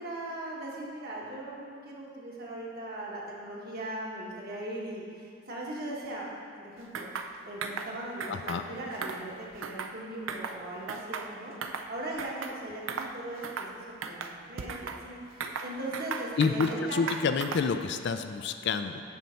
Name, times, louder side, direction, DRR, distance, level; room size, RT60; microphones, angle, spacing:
voice 1, 0.0-6.3 6.6-7.1 7.4-11.5 11.9-17.0, right 1 dB, 50° right, -4 dB, 1.4 m, -39 dB
sound 1, 6.9-7.3 7.6-7.9 8.2-8.6 8.9-10.0 10.3-10.6 10.9-11.9 12.2-12.6 12.9-13.1 13.4-13.7 14.0-15.0 15.4-16.8 17.1-17.8, right 5 dB, 75° right, 0.5 m, -37 dB
voice 2, 8.3-8.6 16.4-19.0, left 5 dB, 60° left, 9 dB, 0.4 m, -28 dB
9.3 x 4.1 x 5.7 m, 2.3 s
head